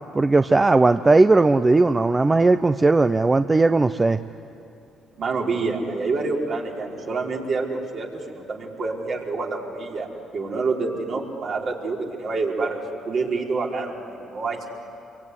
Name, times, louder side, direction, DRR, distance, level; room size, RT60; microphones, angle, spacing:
voice 1, 0.1-4.2, right 3 dB, 25° right, 10 dB, 0.8 m, -17 dB
voice 2, 5.2-10.1 10.3-14.7, right 3 dB, 55° right, -2 dB, 5.0 m, -27 dB
26.5 x 22.5 x 10.0 m, 2.7 s
supercardioid pair, 70°, 0 cm